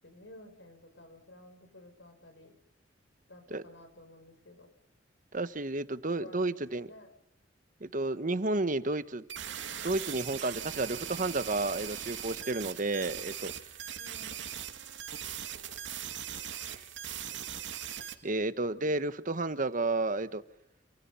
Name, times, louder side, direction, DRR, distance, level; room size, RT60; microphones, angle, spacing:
voice 1, 0.0-2.6 3.3-4.7 6.2-7.1 14.0-14.5, left 1 dB, 70° left, 7.5 m, -53 dB
voice 2, 5.3-6.9 7.8-9.2 9.8-13.5 16.8-16.9 18.2-20.4, right 2 dB, 45° right, 1.3 m, -31 dB
sound 1, 9.3-18.1, right 9 dB, 70° right, 2.9 m, -40 dB
28.5 x 27.0 x 5.7 m
head